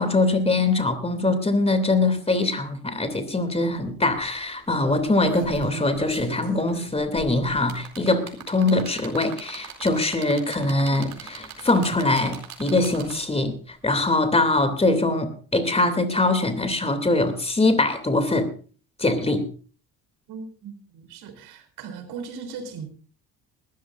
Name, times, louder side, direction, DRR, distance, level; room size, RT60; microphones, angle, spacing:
voice 1, 0.0-13.5 13.8-18.5 19.0-19.4, left 2 dB, 15° left, 9 dB, 2.9 m, -22 dB
sound 1, 3.7-3.8 4.1-4.4 4.9-13.4 14.5-14.6, right 7 dB, 65° right, 4.2 m, -39 dB
voice 2, 20.3-22.9, right 5 dB, 80° right, 7 dB, 3.9 m, -38 dB
20.5 x 14.0 x 2.6 m, 0.39 s
cardioid pair, 100°, 38 cm